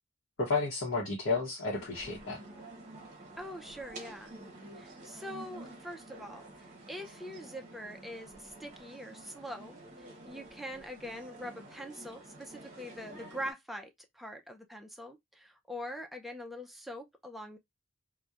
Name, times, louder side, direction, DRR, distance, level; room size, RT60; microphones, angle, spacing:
voice 1, 0.4-2.4, left 3 dB, 60° left, 0.8 m, -32 dB
sound 1, 1.8-13.5, right 2 dB, 35° right, 0.8 m, -50 dB
voice 2, 3.4-4.3 4.7-17.6, equal, ahead, 0.3 m, -43 dB
2.8 x 2.1 x 2.3 m
head